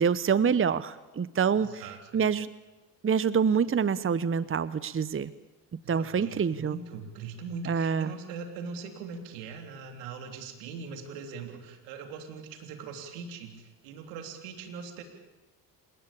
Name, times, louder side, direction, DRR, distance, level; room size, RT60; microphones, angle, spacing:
voice 1, 0.0-1.8 2.1-2.5 3.0-5.3 5.9-6.8 7.7-8.1, right 6 dB, 25° right, 16 dB, 1.0 m, -26 dB
voice 2, 1.5-2.2 5.8-15.0, right 5 dB, 80° right, 5 dB, 3.5 m, -41 dB
28.5 x 17.0 x 8.7 m, 1.1 s
hypercardioid pair, 55°, 47 cm